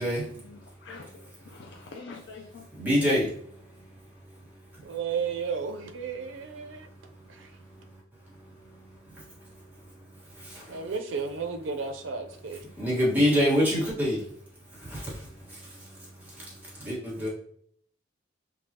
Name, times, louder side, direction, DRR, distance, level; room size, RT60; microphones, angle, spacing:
voice 1, 0.0-2.6, left 4 dB, 65° left, 0.5 m, -46 dB
voice 2, 2.8-3.3 9.1-9.2 10.3-10.9 12.8-14.2 14.8-17.3, equal, 10° right, 1.4 m, -27 dB
voice 3, 4.8-6.9 7.3-7.5 10.7-12.6, right 5 dB, 85° right, 0.5 m, -33 dB
5.3 x 2.4 x 2.8 m
head